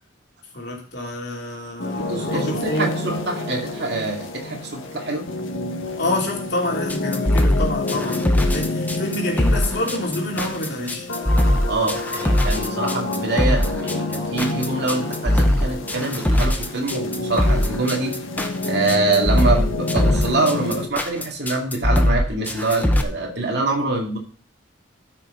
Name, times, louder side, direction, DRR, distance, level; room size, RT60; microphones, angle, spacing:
voice 1, 0.5-2.9 6.0-11.1, left 1 dB, 55° left, -1 dB, 3.1 m, -27 dB
sound 1, 1.8-20.9, left 2 dB, 80° left, 1.5 m, -29 dB
voice 2, 2.0-5.3 11.7-18.2 18.6-24.2, right 2 dB, 55° right, 0 dB, 2.5 m, -25 dB
sound 2, 6.9-23.0, left 1 dB, 10° left, 0.8 m, -20 dB
13.0 x 6.4 x 3.9 m, 0.41 s
head